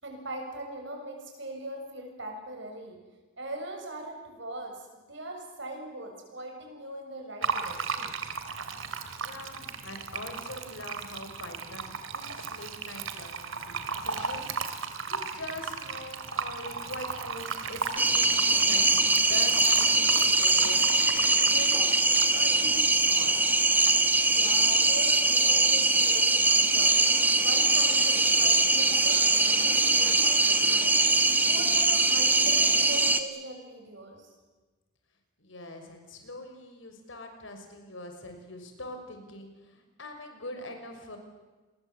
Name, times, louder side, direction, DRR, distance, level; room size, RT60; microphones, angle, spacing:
voice 1, 0.0-3.0 3.4-8.1 24.3-27.0 27.4-31.0 31.4-34.3, right 1 dB, 60° right, 3 dB, 7.1 m, -41 dB
Fill (with liquid), 7.4-22.6, right 5 dB, 75° right, 2.5 m, -36 dB
voice 2, 9.2-21.8 22.3-23.4 35.4-41.2, left 1 dB, 70° left, 5 dB, 5.8 m, -43 dB
sound 1, 18.0-33.2, right 2 dB, 10° right, 1.4 m, -22 dB
29.0 x 22.0 x 8.2 m, 1.2 s
head